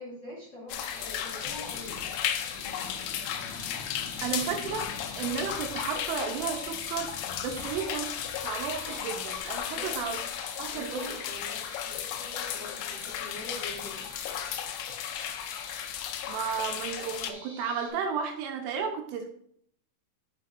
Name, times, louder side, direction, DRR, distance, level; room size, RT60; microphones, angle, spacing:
voice 1, 0.0-2.2 9.7-10.3 10.7-14.1, left 2 dB, 30° left, -6 dB, 2.6 m, -44 dB
sound 1, 0.7-17.3, left 10 dB, 85° left, 2.7 m, -35 dB
sound 2, 0.8-17.9, right 1 dB, 15° right, 1.7 m, -47 dB
sliding door closing, 1.3-9.1, left 3 dB, 65° left, 2.7 m, -47 dB
voice 2, 4.2-4.9 5.2-7.1 7.4-8.1 8.4-10.2 10.6-11.1 16.3-19.3, right 6 dB, 80° right, 4 dB, 3.3 m, -33 dB
9.8 x 6.2 x 2.5 m, 0.63 s
omnidirectional pair, 5.8 m